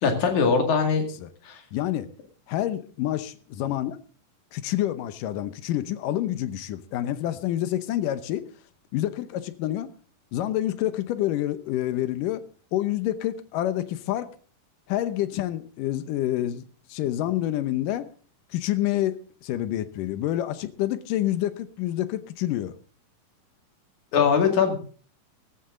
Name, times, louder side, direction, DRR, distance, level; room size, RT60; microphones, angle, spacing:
voice 1, 0.0-1.0 1.5-1.6 24.1-24.8, left 6 dB, 60° left, 3.5 m, -21 dB
voice 2, 1.7-2.1 2.5-4.0 4.5-8.5 8.9-9.9 10.3-12.4 12.7-14.3 14.9-16.6 16.9-18.1 18.5-22.7, left 13 dB, 75° left, 2.4 m, -27 dB
14.5 x 14.0 x 3.8 m
omnidirectional pair, 4.1 m